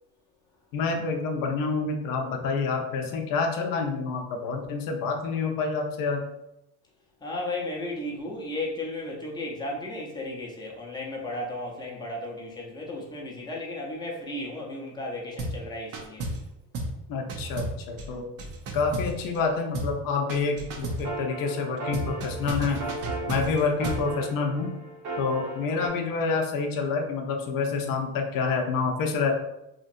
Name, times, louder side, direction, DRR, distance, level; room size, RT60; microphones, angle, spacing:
voice 1, 0.7-6.2 17.1-18.3 18.7-22.9 23.3-24.7 25.2-29.3, left 4 dB, 50° left, 3 dB, 0.6 m, -28 dB
voice 2, 7.2-16.2, left 1 dB, 10° left, -3 dB, 0.6 m, -34 dB
sound 1, 15.4-15.6 15.9-16.5 16.7-17.0 17.3-19.5 19.7-20.0 20.3-21.1 21.9-24.1, right 2 dB, 35° right, 0.5 m, -33 dB
sound 2, 20.8-25.9, right 2 dB, 80° right, 1.0 m, -36 dB
2.9 x 2.5 x 2.5 m, 0.88 s
supercardioid pair, 110°, 46 cm